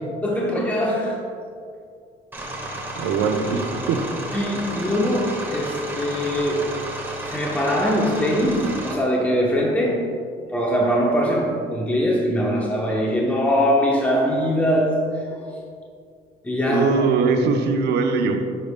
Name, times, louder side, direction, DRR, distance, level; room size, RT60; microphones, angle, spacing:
voice 1, 0.2-1.2 4.3-6.8 7.3-10.1 10.5-15.4 16.4-16.9, equal, 10° left, -2 dB, 0.8 m, -22 dB
sound 1, 2.3-8.9, right 1 dB, 10° right, 1.4 m, -32 dB
voice 2, 3.0-4.0 16.7-18.4, right 4 dB, 85° right, 4 dB, 0.8 m, -21 dB
10.5 x 6.5 x 2.2 m, 2.2 s
cardioid pair, 110°, 17 cm